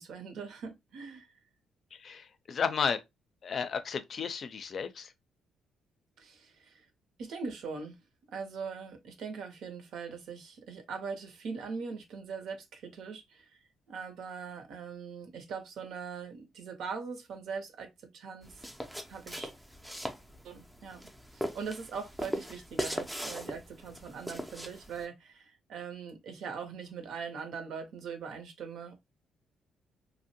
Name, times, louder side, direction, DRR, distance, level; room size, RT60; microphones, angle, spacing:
voice 1, 0.0-1.3 6.2-6.9 7.2-8.0 8.3-13.6 13.9-18.6 19.1-19.5 20.4-21.0 21.3-28.9, right 5 dB, 75° right, 0.7 m, -41 dB
voice 2, 1.9-3.0 3.4-5.1, left 6 dB, 50° left, 0.4 m, -33 dB
sound 1, 18.4-25.0, equal, 5° right, 0.4 m, -40 dB
2.6 x 2.0 x 2.7 m
cardioid pair, 90°, 0 cm